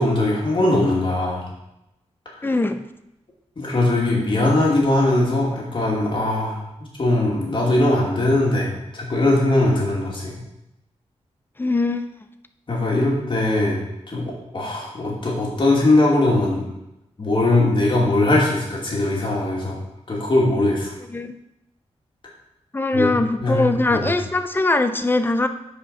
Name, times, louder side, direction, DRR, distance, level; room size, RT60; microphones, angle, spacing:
voice 1, 0.0-1.4 3.6-10.4 12.7-16.6 17.2-19.8 20.1-20.9 22.9-24.1, left 2 dB, 45° left, -3 dB, 2.5 m, -20 dB
voice 2, 2.4-2.8 11.6-12.0 21.1-21.3 22.7-25.5, left 2 dB, 20° left, 9 dB, 0.6 m, -21 dB
8.1 x 5.1 x 5.6 m, 0.88 s
wide cardioid pair, 105°, 12 cm